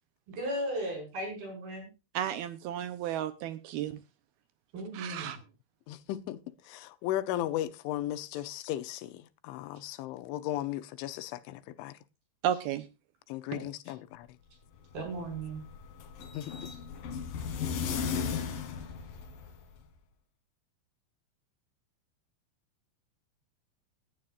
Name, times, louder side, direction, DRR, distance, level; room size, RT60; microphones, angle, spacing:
voice 1, 0.4-1.9 4.7-5.4 13.5-13.6 14.9-15.6, right 1 dB, 55° right, 7.6 m, -36 dB
voice 2, 2.1-4.0 4.9-5.4 12.4-12.9, right 10 dB, 80° right, 2.3 m, -33 dB
voice 3, 5.9-12.0 13.3-14.3 16.3-16.7, left 13 dB, 85° left, 3.4 m, -36 dB
sound 1, 14.7-19.8, left 6 dB, 60° left, 3.2 m, -36 dB
18.5 x 11.5 x 2.5 m
omnidirectional pair, 5.3 m